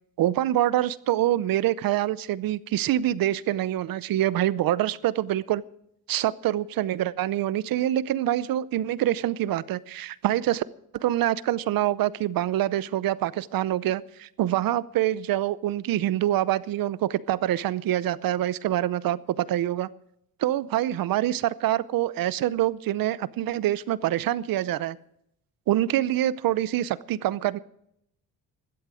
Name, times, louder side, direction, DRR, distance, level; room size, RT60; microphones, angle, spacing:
voice 1, 0.2-5.6 6.1-10.6 10.9-19.9 20.4-25.0 25.7-27.6, right 13 dB, 70° right, 19 dB, 0.7 m, -25 dB
16.0 x 13.0 x 4.9 m, 0.75 s
cardioid pair, 130°, 36 cm